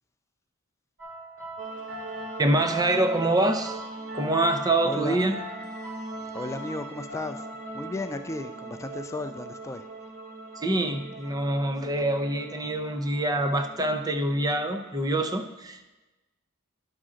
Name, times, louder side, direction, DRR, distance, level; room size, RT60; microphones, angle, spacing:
sound 1, 1.0-8.3, right 1 dB, 70° right, 2.1 m, -41 dB
sound 2, 1.6-15.3, right 2 dB, 40° right, 1.2 m, -41 dB
voice 1, 2.4-3.8 4.1-5.4 10.6-15.9, right 1 dB, 20° right, 7 dB, 0.6 m, -25 dB
voice 2, 4.8-5.2 6.3-7.5 7.7-9.9, left 2 dB, 15° left, 8 dB, 0.3 m, -34 dB
11.0 x 6.3 x 3.7 m, 1.1 s
head